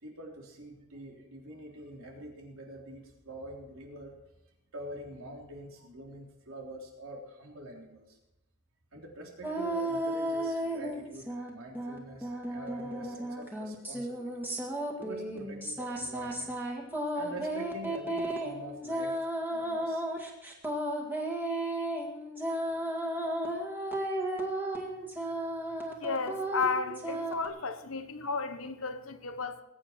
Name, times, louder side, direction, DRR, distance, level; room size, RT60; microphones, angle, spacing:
voice 1, 0.0-4.1 4.7-8.2 8.9-14.5 15.0-16.5 17.1-20.0, right 1 dB, 85° right, 3.6 m, -45 dB
sound 1, 9.4-11.5 11.7-27.5, right 1 dB, 10° right, 2.0 m, -34 dB
voice 2, 26.0-29.6, left 4 dB, 75° left, 1.2 m, -33 dB
21.0 x 9.3 x 4.5 m
head